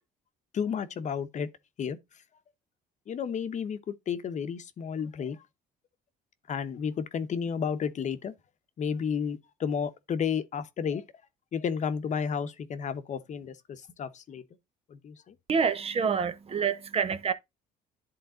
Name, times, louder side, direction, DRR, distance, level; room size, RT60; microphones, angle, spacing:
voice 1, 0.5-1.5 1.8-2.0 3.1-3.8 4.1-5.4 6.5-8.3 8.8-11.0 11.5-14.4 14.9-15.1, left 7 dB, 45° left, 0.9 m, -32 dB
voice 2, 15.5-17.3, right 6 dB, 35° right, 0.8 m, -27 dB
10.5 x 3.9 x 3.8 m
cardioid pair, 110°, 17 cm